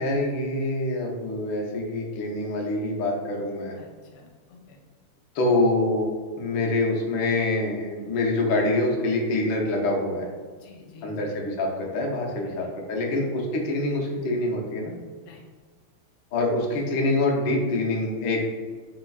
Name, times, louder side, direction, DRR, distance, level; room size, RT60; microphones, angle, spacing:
voice 1, 0.0-3.8 5.3-10.3 11.0-14.9 16.3-18.4, left 2 dB, 65° left, -1 dB, 1.4 m, -25 dB
voice 2, 3.8-4.8 10.6-11.4 12.4-12.7 13.1-13.3 15.2-15.4, left 3 dB, 90° left, 0 dB, 1.7 m, -49 dB
4.3 x 4.3 x 2.3 m, 1.5 s
omnidirectional pair, 2.4 m